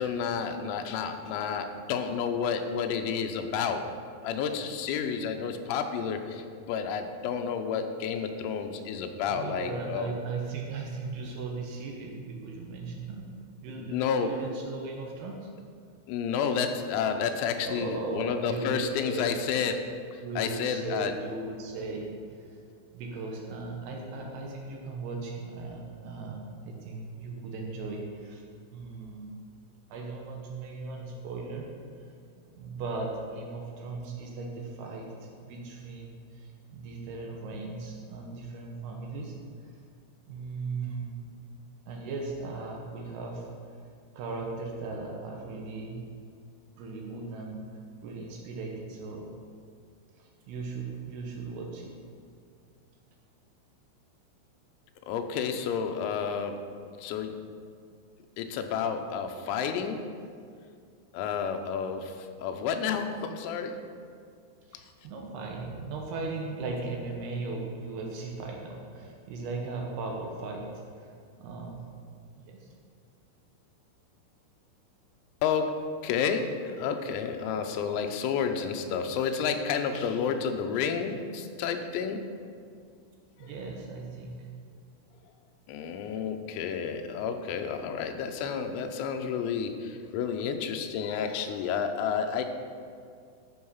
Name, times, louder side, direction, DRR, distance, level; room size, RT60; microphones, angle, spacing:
voice 1, 0.0-3.9 4.2-10.1 13.8-14.4 16.1-21.1 55.1-56.6 57.0-57.4 58.4-60.1 61.1-63.8 75.4-82.2 83.4-83.5 85.7-92.4, left 6 dB, 90° left, 6 dB, 3.6 m, -30 dB
voice 2, 9.3-13.3 13.6-15.5 17.6-19.4 20.2-22.6 22.9-28.4 28.7-29.3 29.9-31.7 32.4-39.4 39.6-39.7 40.3-41.3 41.9-43.5 44.1-46.1 46.8-47.7 48.0-49.3 50.2-51.9 64.7-71.1 71.4-71.9 72.4-72.7 83.4-84.5, right 3 dB, 75° right, 0 dB, 2.5 m, -37 dB
12.5 x 6.5 x 5.6 m, 2.2 s
omnidirectional pair, 6.0 m